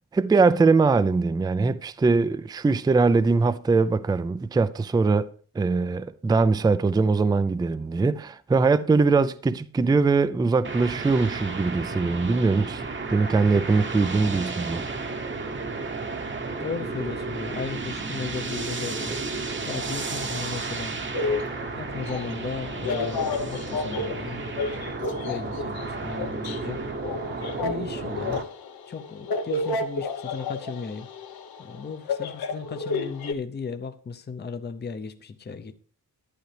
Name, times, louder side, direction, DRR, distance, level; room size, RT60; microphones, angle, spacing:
voice 1, 0.1-5.3 5.6-12.8 13.1-14.8, right 4 dB, 10° right, 0.4 m, -22 dB
sound 1, 10.6-28.4, right 3 dB, 30° right, 0.9 m, -33 dB
voice 2, 16.6-19.2 19.7-21.0 21.8-24.5 24.7-26.8 27.6-28.4 28.9-31.1 31.6-35.7, left 5 dB, 30° left, 0.6 m, -36 dB
sound 2, 21.1-33.3, left 3 dB, 75° left, 1.1 m, -31 dB
11.5 x 9.1 x 3.3 m
wide cardioid pair, 115°, 37 cm